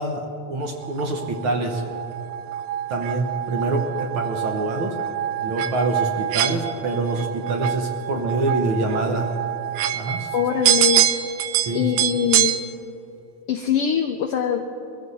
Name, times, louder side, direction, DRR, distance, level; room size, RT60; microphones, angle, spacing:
voice 1, 0.0-1.8 2.9-5.0 5.4-9.3 9.9-10.3 11.6-11.9, right 2 dB, 60° right, 3 dB, 1.5 m, -25 dB
sound 1, 0.8-12.6, right 12 dB, 75° right, 1.6 m, -25 dB
voice 2, 10.3-11.1 11.7-12.6 13.5-14.8, left 9 dB, 90° left, 6 dB, 1.2 m, -23 dB
23.0 x 14.5 x 4.1 m, 2.8 s
omnidirectional pair, 3.4 m